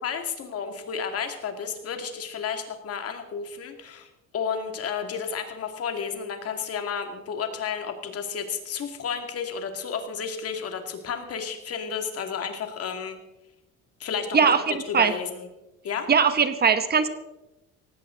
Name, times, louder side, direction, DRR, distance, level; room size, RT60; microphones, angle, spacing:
voice 1, 0.0-4.1 4.3-13.2 14.0-14.5 14.9-15.5 15.8-16.1, left 6 dB, 45° left, 6 dB, 2.4 m, -32 dB
voice 2, 14.3-15.1 16.1-17.1, right 6 dB, 30° right, 11 dB, 1.0 m, -20 dB
18.0 x 16.5 x 3.9 m, 0.98 s
cardioid pair, 140°, 33 cm